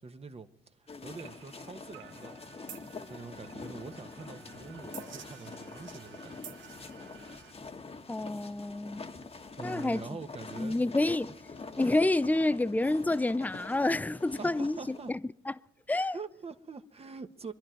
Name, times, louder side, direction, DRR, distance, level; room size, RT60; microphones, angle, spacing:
voice 1, 0.0-2.4 3.1-6.6 9.6-10.8 14.4-15.2 16.1-17.5, right 4 dB, 30° right, 1.2 m, -44 dB
sound 1, 0.9-15.1, left 4 dB, 30° left, 1.3 m, -45 dB
sound 2, 1.1-7.5, right 9 dB, 70° right, 1.2 m, -52 dB
voice 2, 8.1-9.0 9.6-10.0 10.6-11.4 11.7-15.0 15.5-15.6 15.9-16.2, left 2 dB, 10° left, 0.5 m, -28 dB
25.5 x 11.0 x 4.6 m
cardioid pair, 90°, 20 cm